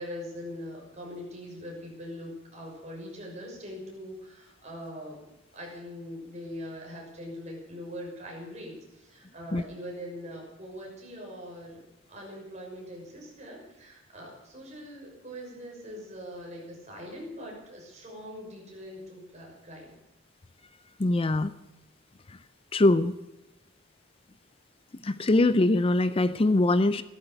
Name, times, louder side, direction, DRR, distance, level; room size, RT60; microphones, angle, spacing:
voice 1, 0.0-5.2 5.5-11.8 12.1-20.0, equal, 35° right, -1 dB, 6.3 m, -42 dB
voice 2, 21.0-21.5 22.7-23.1 25.0-27.0, left 2 dB, 30° left, 14 dB, 0.5 m, -22 dB
16.0 x 12.5 x 6.6 m, 0.95 s
head